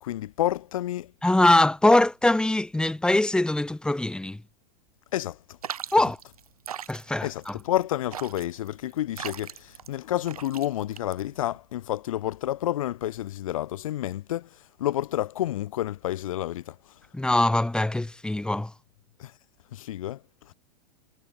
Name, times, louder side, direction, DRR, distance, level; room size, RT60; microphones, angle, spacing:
voice 1, 0.0-1.1 5.1-5.6 7.2-16.8 19.2-19.3 19.7-20.5, left 13 dB, 60° left, 1.0 m, -30 dB
voice 2, 1.2-4.4 5.9-6.2 6.9-7.6 17.1-18.7, left 1 dB, 5° left, 1.8 m, -22 dB
sound 1, 5.6-11.6, right 9 dB, 70° right, 1.5 m, -40 dB
figure-of-eight pair, 95°, 20 cm